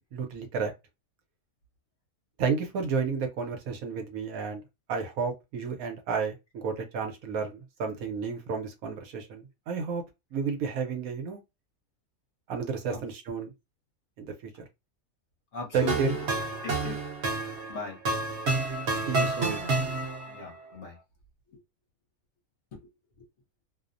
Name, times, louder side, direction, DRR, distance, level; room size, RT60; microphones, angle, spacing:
voice 1, 0.1-0.7 2.4-4.6 4.9-10.0 10.3-11.4 12.5-13.5 14.2-14.5 15.7-16.1 19.1-19.6, right 5 dB, 75° right, 1.1 m, -31 dB
voice 2, 15.5-16.2 16.6-17.0 17.7-18.0 20.3-21.0 21.5-21.6 22.7-22.8, left 4 dB, 55° left, 1.0 m, -38 dB
sound 1, 15.7-20.4, right 3 dB, 55° right, 0.9 m, -29 dB
2.7 x 2.0 x 2.4 m
omnidirectional pair, 1.6 m